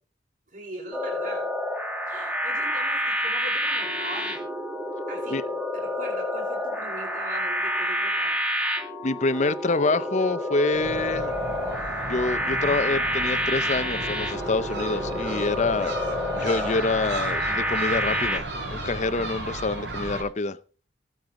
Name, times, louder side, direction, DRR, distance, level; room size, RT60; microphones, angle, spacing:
voice 1, 0.5-1.5 2.1-4.5 5.1-8.4, right 1 dB, 50° right, 5.1 m, -40 dB
sound 1, 0.9-18.4, equal, 5° right, 1.7 m, -28 dB
voice 2, 9.0-11.3 12.1-15.9 16.3-20.6, left 3 dB, 40° left, 0.7 m, -26 dB
Gull seagull, 10.7-20.2, right 1 dB, 75° right, 4.8 m, -34 dB
18.5 x 8.8 x 3.7 m
head